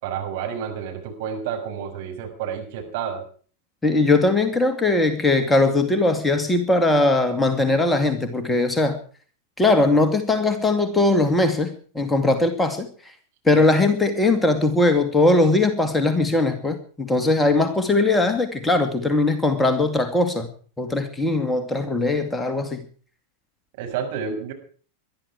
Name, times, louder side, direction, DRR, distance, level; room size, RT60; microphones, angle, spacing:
voice 1, 0.0-3.2 23.8-24.5, right 7 dB, 50° right, 3 dB, 6.2 m, -30 dB
voice 2, 3.8-9.0 9.6-12.9 13.5-20.5 20.8-22.8, left 2 dB, 10° left, 7 dB, 2.3 m, -20 dB
21.5 x 12.5 x 4.7 m, 0.43 s
figure-of-eight pair, 90°, 0 cm